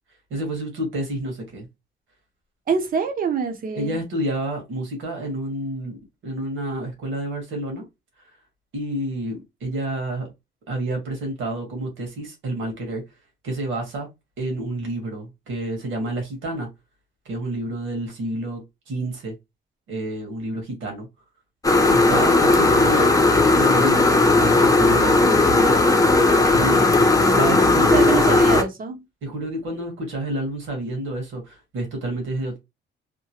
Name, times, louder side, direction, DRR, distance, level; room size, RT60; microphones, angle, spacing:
voice 1, 0.3-1.7 3.7-6.0 6.2-7.8 8.7-10.3 10.7-13.0 13.4-14.1 14.4-16.7 17.2-19.4 19.9-21.1 21.9-23.1 23.5-25.8 26.5-26.9 27.2-28.3 29.2-32.6, right 1 dB, 80° right, 1.4 m, -29 dB
voice 2, 2.7-4.0 26.7-29.0, right 5 dB, 45° right, 0.7 m, -26 dB
sound 1, 21.6-28.6, left 2 dB, 15° left, 0.6 m, -16 dB
2.9 x 2.2 x 2.8 m
cardioid pair, 90°, 20 cm